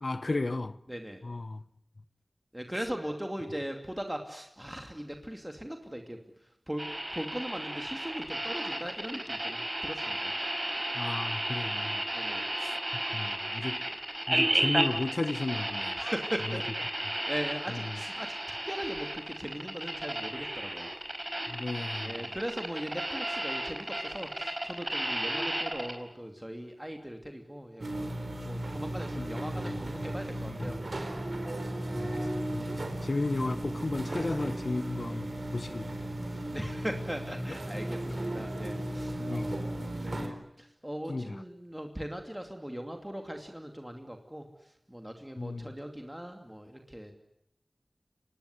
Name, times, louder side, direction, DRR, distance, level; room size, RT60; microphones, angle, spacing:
voice 1, 0.0-0.8 1.2-1.6 10.9-12.0 12.6-12.7 13.1-13.8 14.3-16.0 17.7-17.8 21.5-22.2 29.1-29.2 29.6-29.7 30.5-30.8 32.0-36.3 38.0-38.5 39.2-39.5 41.1-41.4 45.4-45.7, left 2 dB, 60° left, 1.0 m, -34 dB
voice 2, 0.9-1.2 2.5-6.8 7.1-10.3 12.1-12.5 16.0-16.6 17.0-18.4 18.7-20.9 22.0-28.1 28.4-30.8 36.5-47.1, equal, 10° right, 2.6 m, -39 dB
sound 1, 6.8-26.0, right 1 dB, 35° right, 4.9 m, -33 dB
sound 2, 27.8-40.3, right 1 dB, 65° right, 3.9 m, -35 dB
25.5 x 19.5 x 9.8 m
wide cardioid pair, 45°, 0 cm